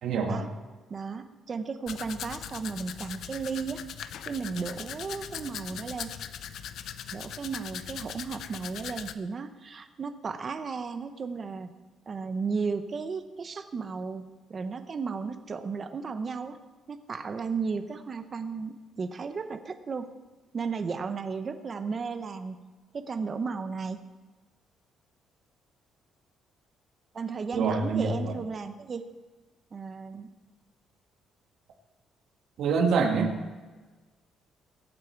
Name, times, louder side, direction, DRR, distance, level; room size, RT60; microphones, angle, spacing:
voice 1, 0.0-0.5 27.5-28.4 32.6-33.4, right 5 dB, 55° right, 3 dB, 2.0 m, -26 dB
voice 2, 0.9-3.8 4.3-6.1 7.1-11.7 12.1-14.2 14.5-16.6 16.9-20.1 20.5-22.6 23.1-24.0 27.1-29.0 29.7-30.3, right 5 dB, 30° right, 8 dB, 0.8 m, -34 dB
Domestic sounds home sounds, 1.9-9.1, left 9 dB, 60° left, 0.6 m, -40 dB
23.0 x 8.6 x 4.6 m, 1.3 s
cardioid pair, 175°, 0 cm